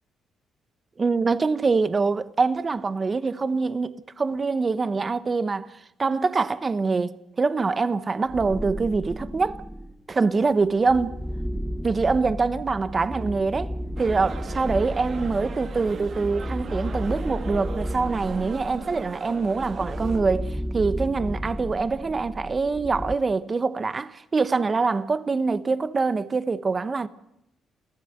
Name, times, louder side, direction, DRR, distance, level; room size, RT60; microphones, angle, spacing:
voice 1, 1.0-9.6 10.1-11.1 11.8-13.7 14.0-27.1, right 4 dB, 30° right, 1.0 m, -24 dB
sound 1, 8.3-10.0 10.6-23.2, equal, ahead, 0.9 m, -33 dB
sound 2, 14.0-20.2, right 5 dB, 50° right, 2.2 m, -39 dB
29.0 x 15.0 x 8.0 m
cardioid pair, 90°, 0 cm